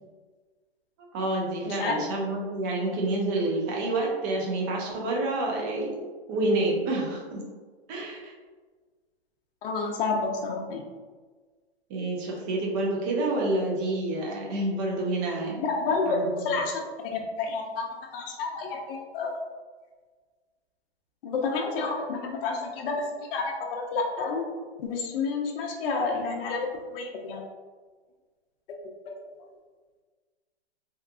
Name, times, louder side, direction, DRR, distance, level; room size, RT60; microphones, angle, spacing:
voice 1, 1.1-6.0 6.3-7.4 7.9-8.3 11.9-15.6 16.1-16.6, right 2 dB, 20° right, -2 dB, 0.4 m, -28 dB
voice 2, 1.6-2.0 9.6-10.8 15.6-16.8 17.1-17.8 18.1-19.4 21.2-24.5 24.8-27.4 29.1-29.2, left 4 dB, 60° left, 0 dB, 0.5 m, -29 dB
2.8 x 2.2 x 2.3 m, 1.4 s
hypercardioid pair, 135°, 32 cm